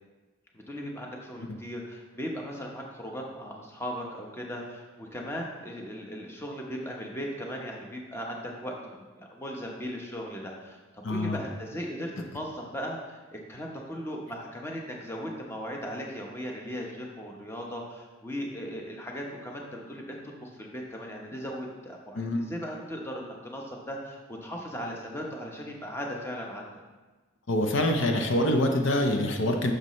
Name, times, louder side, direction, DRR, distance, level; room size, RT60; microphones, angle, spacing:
voice 1, 0.5-26.7, equal, 10° left, -1 dB, 0.9 m, -38 dB
voice 2, 11.0-11.4 22.1-22.4 27.5-29.7, left 1 dB, 65° left, 3 dB, 0.7 m, -25 dB
9.7 x 6.6 x 3.1 m, 1.3 s
head